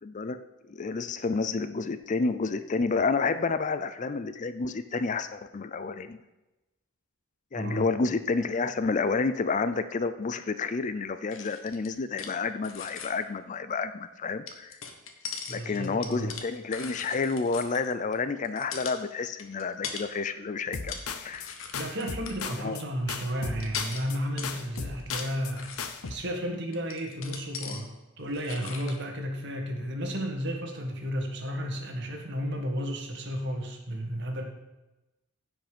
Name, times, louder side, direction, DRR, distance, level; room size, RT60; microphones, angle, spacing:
voice 1, 0.0-6.2 7.5-14.8 15.5-21.6 22.6-22.8, left 4 dB, 35° left, 12 dB, 0.4 m, -30 dB
voice 2, 7.5-7.9 15.5-16.3 21.7-27.9 28.2-34.4, equal, 55° right, 3 dB, 1.7 m, -33 dB
sound 1, 11.3-12.4 12.6-13.1 14.5-18.1 18.4-19.0 19.4-20.1 20.6-21.1 21.3-22.6 23.2-23.3 23.6-26.2 26.7-27.8 28.2-29.0, left 6 dB, 60° left, 1.2 m, -40 dB
sound 2, 20.7-21.5 21.7-22.8 23.1-24.2 24.4-25.5 25.8-26.1, left 5 dB, 85° left, 0.8 m, -36 dB
15.5 x 5.3 x 5.1 m, 1.0 s
head